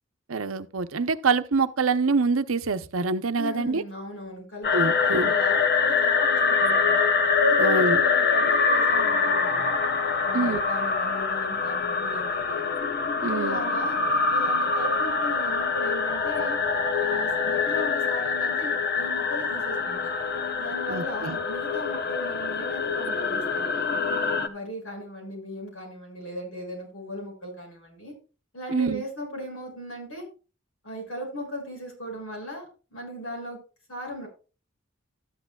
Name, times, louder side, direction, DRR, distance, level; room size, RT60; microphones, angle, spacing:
voice 1, 0.3-3.8 4.7-5.3 7.6-8.0 10.3-10.6 13.2-13.6 20.9-21.4 28.7-29.0, right 4 dB, 75° right, 0.7 m, -25 dB
voice 2, 3.3-7.0 7.4-9.7 10.1-12.6 13.2-14.0 14.3-16.6 17.0-20.1 20.6-23.9 24.4-28.1 28.5-30.2 30.8-33.6 33.9-34.3, equal, 70° left, 6.4 m, -37 dB
sound 1, 4.6-24.5, left 5 dB, 50° left, 0.9 m, -24 dB
13.0 x 10.5 x 2.3 m
head